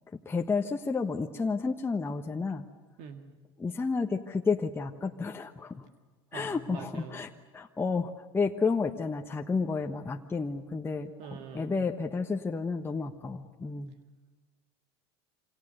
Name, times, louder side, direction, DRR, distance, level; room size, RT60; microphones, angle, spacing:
voice 1, 0.2-2.7 3.6-5.9 6.3-11.1 11.5-13.9, left 4 dB, 15° left, 3 dB, 1.3 m, -31 dB
voice 2, 3.0-3.3 6.3-7.3 11.2-11.9, right 5 dB, 60° right, 5 dB, 1.9 m, -44 dB
27.5 x 26.0 x 6.9 m, 1.3 s
hypercardioid pair, 85°, 14 cm